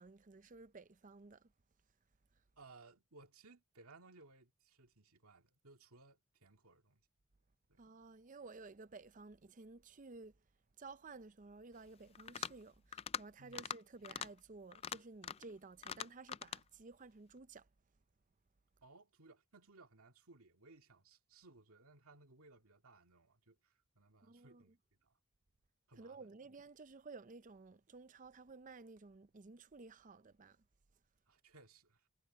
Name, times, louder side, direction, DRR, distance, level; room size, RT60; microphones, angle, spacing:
voice 1, 0.0-1.5 7.8-10.4 10.8-17.7 24.2-24.6 26.0-30.6, right 3 dB, 35° right, 0.6 m, -54 dB
voice 2, 2.6-7.0 7.7-7.8 13.4-13.6 18.8-25.1 25.9-26.3 31.3-32.1, right 3 dB, 80° right, 2.1 m, -62 dB
sound 1, 12.2-12.6 12.9-13.2 13.5-13.8 14.0-14.3 14.7-15.5 15.8-16.6, left 8 dB, 25° left, 0.3 m, -43 dB
head